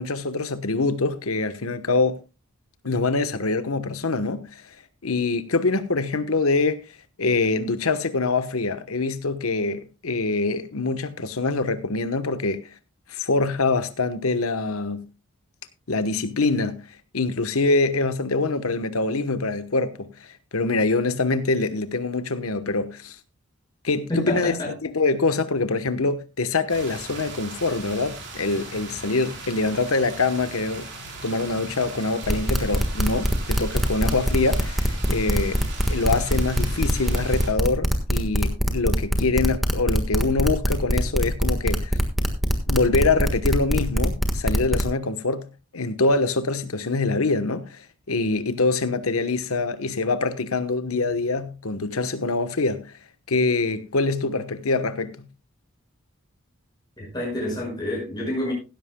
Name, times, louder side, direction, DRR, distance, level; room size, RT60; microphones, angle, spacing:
voice 1, 0.0-2.2 2.8-4.6 5.0-6.8 7.2-12.6 13.1-15.0 15.9-16.8 17.1-20.1 20.5-23.2 23.8-24.5 24.8-30.9 31.2-35.6 35.9-42.0 42.7-45.5 45.7-52.9 53.3-55.2, left 3 dB, 85° left, 1.1 m, -24 dB
voice 2, 24.1-24.7 57.0-58.5, left 1 dB, 20° left, 5.7 m, -28 dB
sound 1, 26.7-37.5, right 3 dB, 55° right, 4.0 m, -38 dB
sound 2, 32.2-44.9, equal, ahead, 1.4 m, -22 dB
16.0 x 13.0 x 2.2 m
head